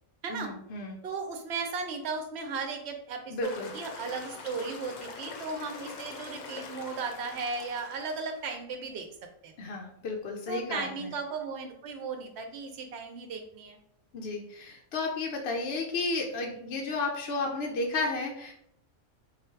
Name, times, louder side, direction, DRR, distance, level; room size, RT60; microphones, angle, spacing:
voice 1, 0.3-1.0 3.3-3.7 9.6-11.1 14.1-18.5, left 3 dB, 60° left, 1 dB, 0.7 m, -33 dB
voice 2, 1.0-9.1 9.4-9.5 10.5-13.8, right 4 dB, 55° right, 4 dB, 0.9 m, -36 dB
sound 1, 3.4-8.5, left 4 dB, 85° left, 1.2 m, -44 dB
4.1 x 2.3 x 4.5 m, 0.69 s
omnidirectional pair, 1.5 m